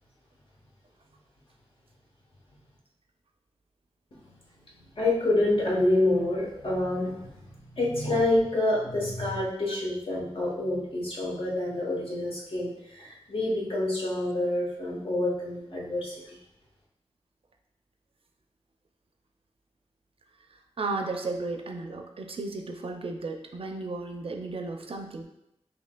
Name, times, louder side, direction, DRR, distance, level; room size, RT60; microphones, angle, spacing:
voice 1, 4.8-16.4, left 1 dB, 60° left, -4 dB, 1.2 m, -27 dB
voice 2, 20.8-25.2, right 3 dB, 65° right, 4 dB, 0.5 m, -34 dB
5.6 x 2.7 x 2.2 m, 0.83 s
wide cardioid pair, 90°, 10 cm